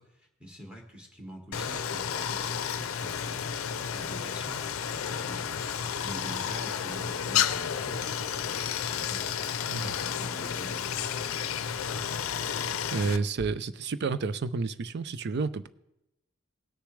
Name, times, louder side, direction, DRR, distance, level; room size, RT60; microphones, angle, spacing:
voice 1, 0.0-3.5 3.9-5.6 6.0-8.0 8.9-9.2 9.7-10.9, equal, 5° right, 1.6 m, -45 dB
Stream, 1.5-13.2, left 8 dB, 85° left, 0.5 m, -31 dB
voice 2, 12.9-15.7, right 4 dB, 55° right, 0.5 m, -30 dB
18.0 x 6.7 x 3.2 m
head